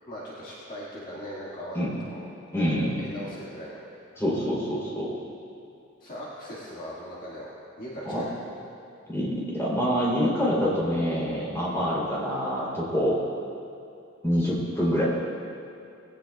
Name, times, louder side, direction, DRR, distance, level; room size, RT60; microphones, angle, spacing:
voice 1, 0.1-2.3 3.0-4.0 6.0-7.5 7.8-8.5, equal, 40° left, -8 dB, 2.0 m, -39 dB
voice 2, 2.5-3.1 4.2-5.1 8.0-8.2 9.1-13.2 14.2-15.0, equal, 10° left, -6 dB, 3.4 m, -26 dB
19.5 x 16.5 x 2.4 m, 2.6 s
head